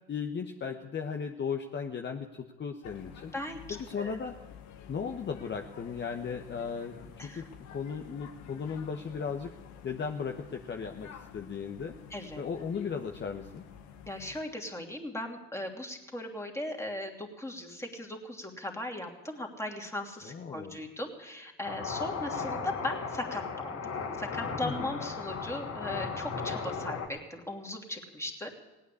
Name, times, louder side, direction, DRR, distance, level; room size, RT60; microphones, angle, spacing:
voice 1, 0.1-3.3 3.9-4.4 4.9-7.4 7.7-9.5 9.8-11.9 12.4-13.6 20.2-20.8 24.6-24.9, left 6 dB, 40° left, 4 dB, 1.2 m, -36 dB
sound 1, 2.8-14.4, left 8 dB, 75° left, 1.5 m, -50 dB
voice 2, 12.1-12.4 14.1-23.8 24.2-28.5, left 1 dB, 10° left, 2 dB, 3.0 m, -38 dB
sound 2, 21.6-27.1, left 5 dB, 55° left, 2.4 m, -36 dB
17.5 x 9.3 x 8.4 m, 1.1 s
supercardioid pair, 70°, 29 cm